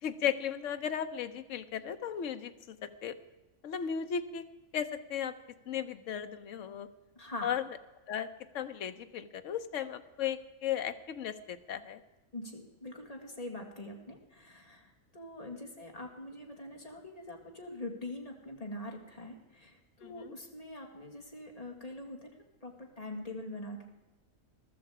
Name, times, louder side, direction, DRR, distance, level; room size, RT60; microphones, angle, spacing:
voice 1, 0.0-3.1 3.6-4.4 4.7-5.3 5.7-6.9 7.4-7.6 8.1-8.3 8.5-12.0 20.0-20.4, left 8 dB, 65° left, 9 dB, 1.1 m, -35 dB
voice 2, 7.2-7.5 12.3-23.9, left 1 dB, 25° left, 1 dB, 2.1 m, -44 dB
14.5 x 13.0 x 4.9 m, 1.1 s
omnidirectional pair, 1.4 m